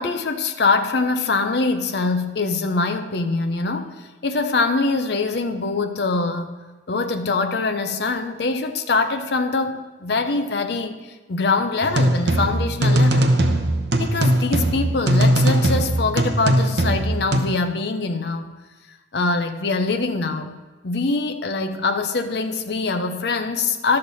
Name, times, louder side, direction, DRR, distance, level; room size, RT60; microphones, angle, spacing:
voice 1, 0.0-6.5 6.9-13.4 14.0-18.5 19.1-20.6 20.8-24.0, left 3 dB, 60° left, 6 dB, 0.6 m, -23 dB
sound 1, 11.8-17.4, right 1 dB, 70° right, 0.8 m, -19 dB
11.5 x 6.4 x 4.0 m, 1.2 s
head